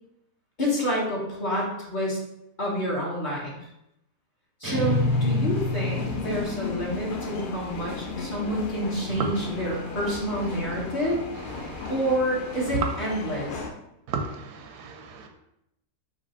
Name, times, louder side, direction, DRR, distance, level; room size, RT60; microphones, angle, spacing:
voice 1, 0.6-2.2 2.6-3.6 4.6-11.2 11.9-13.6, equal, 35° left, -5 dB, 1.0 m, -28 dB
sound 1, 4.6-6.7, left 2 dB, 25° right, 0.4 m, -26 dB
sound 2, 4.7-13.7, left 4 dB, 90° left, 0.4 m, -35 dB
voice 2, 14.1-15.3, right 4 dB, 85° right, 4 dB, 1.2 m, -35 dB
4.0 x 2.9 x 4.2 m, 0.81 s
omnidirectional pair, 1.7 m